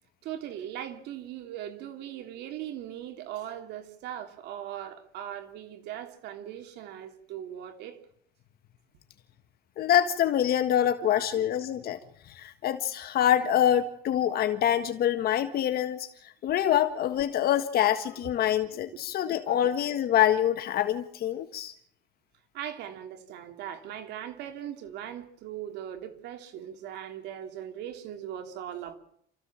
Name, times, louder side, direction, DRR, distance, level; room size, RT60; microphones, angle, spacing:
voice 1, 0.2-8.0 11.0-11.5 16.5-16.6 19.5-19.8 22.5-28.9, right 10 dB, 85° right, 7 dB, 3.2 m, -39 dB
voice 2, 9.8-12.0 12.3-16.1 16.4-21.7, left 10 dB, 65° left, 9 dB, 1.6 m, -25 dB
28.0 x 15.0 x 7.5 m, 0.69 s
cardioid pair, 110°, 17 cm